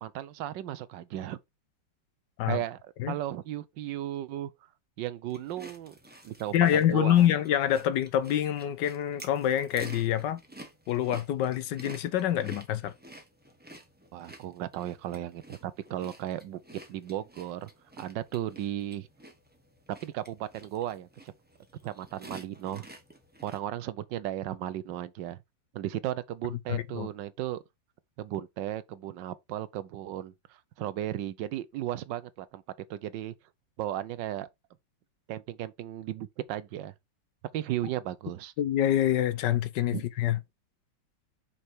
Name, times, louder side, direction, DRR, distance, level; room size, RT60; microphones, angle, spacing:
voice 1, 0.0-1.4 2.5-4.5 5.0-5.9 6.2-7.3 14.1-17.7 18.0-19.1 20.0-21.3 21.8-22.9 23.4-25.4 25.7-27.6 28.2-32.6 32.9-33.3 33.8-34.5 35.3-36.9 37.5-38.5 39.9-40.0, right 12 dB, 75° right, 1.3 m, -35 dB
sound 1, 5.3-23.6, right 1 dB, 5° right, 1.0 m, -50 dB
voice 2, 6.5-10.4 10.9-12.9 26.7-27.1 38.6-40.4, left 11 dB, 75° left, 1.3 m, -26 dB
5.5 x 4.9 x 4.4 m
omnidirectional pair, 2.0 m